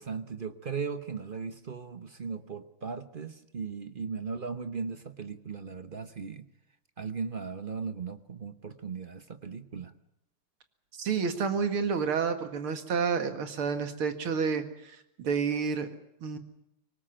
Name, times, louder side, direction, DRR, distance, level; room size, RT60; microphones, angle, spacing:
voice 1, 0.0-6.5 7.0-9.9, right 5 dB, 40° right, 10 dB, 0.7 m, -37 dB
voice 2, 11.0-15.9 16.2-16.4, right 6 dB, 75° right, 8 dB, 2.8 m, -29 dB
25.0 x 19.0 x 8.9 m, 0.82 s
omnidirectional pair, 2.4 m